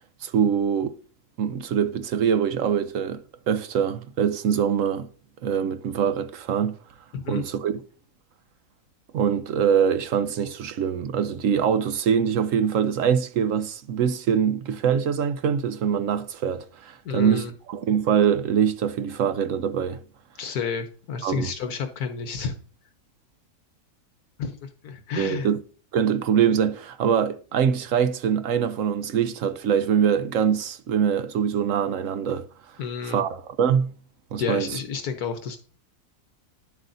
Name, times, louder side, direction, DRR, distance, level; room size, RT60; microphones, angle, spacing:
voice 1, 0.2-0.9 1.4-5.1 5.4-6.7 7.3-7.8 9.1-20.0 21.2-21.5 25.2-25.6 25.9-32.4 33.0-33.9 34.3-34.8, right 8 dB, 65° right, 0.9 m, -23 dB
voice 2, 17.0-17.5 20.4-22.6 24.4-25.5 32.8-33.2 34.4-35.6, left 6 dB, 75° left, 1.3 m, -30 dB
10.5 x 7.8 x 2.6 m
omnidirectional pair, 1.7 m